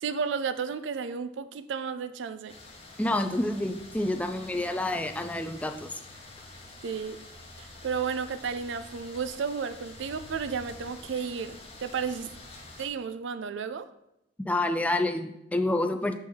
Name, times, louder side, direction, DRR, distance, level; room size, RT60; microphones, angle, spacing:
voice 1, 0.0-2.5 6.8-7.2 7.6-12.3 12.8-13.9, right 6 dB, 70° right, 0.4 m, -33 dB
sound 1, 2.5-12.9, left 2 dB, 30° left, 0.9 m, -47 dB
voice 2, 3.0-5.9 14.5-16.2, left 1 dB, 10° left, 0.3 m, -28 dB
6.2 x 4.3 x 3.5 m
head